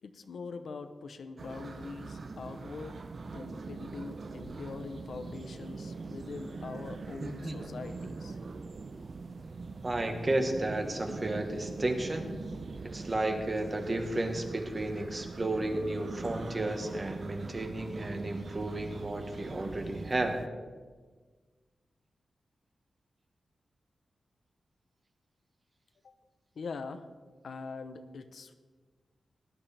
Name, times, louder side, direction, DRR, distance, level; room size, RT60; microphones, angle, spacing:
voice 1, 0.0-8.4 26.0-26.1 26.6-27.1 27.4-28.5, left 4 dB, 70° left, 9 dB, 0.8 m, -43 dB
sound 1, 1.4-20.5, right 4 dB, 50° right, 0.6 m, -42 dB
voice 2, 7.2-7.6 9.8-12.3 12.8-20.4, right 1 dB, 30° right, 4 dB, 1.3 m, -33 dB
18.0 x 11.0 x 3.4 m, 1.5 s
wide cardioid pair, 140°, 0 cm